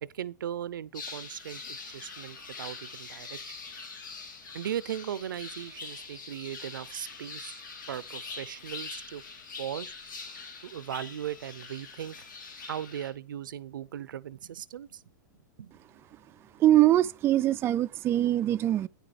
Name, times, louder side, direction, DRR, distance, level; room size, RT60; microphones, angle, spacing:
voice 1, 0.0-3.5 4.5-7.6 7.9-9.2 9.6-9.9 10.6-12.2 12.6-15.0 15.6-15.7, right 10 dB, 85° right, 0.5 m, -38 dB
sound 1, 0.9-13.1, left 4 dB, 80° left, 2.5 m, -43 dB
voice 2, 16.6-18.9, right 13 dB, 25° right, 0.3 m, -23 dB
9.6 x 6.0 x 4.9 m
hypercardioid pair, 130°, 10 cm